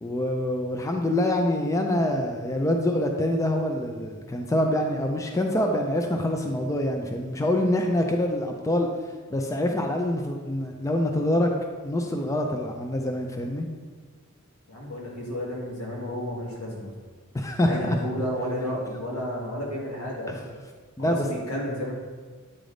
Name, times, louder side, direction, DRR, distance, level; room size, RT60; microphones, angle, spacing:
voice 1, 0.0-8.9 9.3-11.5 11.8-13.7 17.3-18.0 20.3-20.4 21.0-21.3, left 1 dB, 15° left, 3 dB, 0.4 m, -25 dB
voice 2, 14.7-16.9 17.7-20.6 21.0-22.0, equal, 90° left, -3 dB, 1.7 m, -32 dB
8.7 x 3.4 x 3.8 m, 1.5 s
head